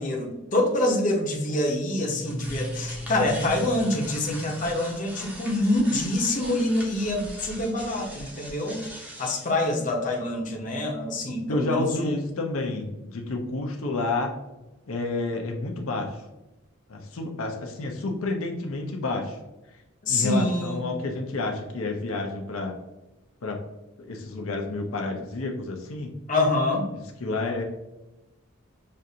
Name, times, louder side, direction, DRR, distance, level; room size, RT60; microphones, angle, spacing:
voice 1, 0.0-8.9 9.2-12.2 20.0-20.8 26.3-26.9, left 1 dB, 35° left, 0 dB, 0.7 m, -26 dB
sound 1, 2.0-9.5, equal, 5° right, 0.7 m, -38 dB
voice 2, 11.5-14.3 14.9-16.2 16.9-19.4 20.1-22.7 23.4-23.6 24.0-26.1 27.2-27.6, left 2 dB, 75° left, 2 dB, 0.6 m, -30 dB
6.3 x 2.5 x 2.7 m, 0.99 s
head